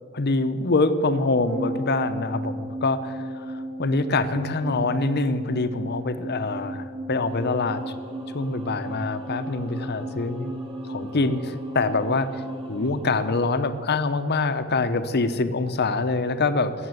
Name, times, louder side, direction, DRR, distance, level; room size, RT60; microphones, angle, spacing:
voice 1, 0.1-7.9 8.3-10.5 10.9-12.3 12.7-16.7, left 3 dB, 50° left, 11 dB, 0.8 m, -25 dB
sound 1, 1.5-14.0 14.2-14.3, right 1 dB, 70° right, 5.0 m, -35 dB
Singing / Musical instrument, 7.1-14.6, right 1 dB, 20° right, 2.9 m, -46 dB
14.0 x 8.0 x 9.6 m, 2.2 s
head